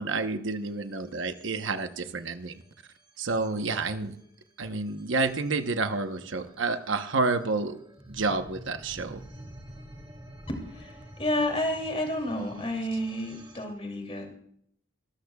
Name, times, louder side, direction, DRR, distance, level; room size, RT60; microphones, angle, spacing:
voice 1, 0.0-2.6 3.2-4.2 4.6-7.8 8.1-9.2, right 3 dB, 70° right, 8 dB, 1.0 m, -29 dB
sound 1, 0.6-13.7, right 1 dB, 20° right, 1.7 m, -50 dB
voice 2, 10.5-14.3, left 1 dB, 30° left, 3 dB, 2.8 m, -31 dB
25.5 x 13.5 x 2.3 m, 0.69 s
head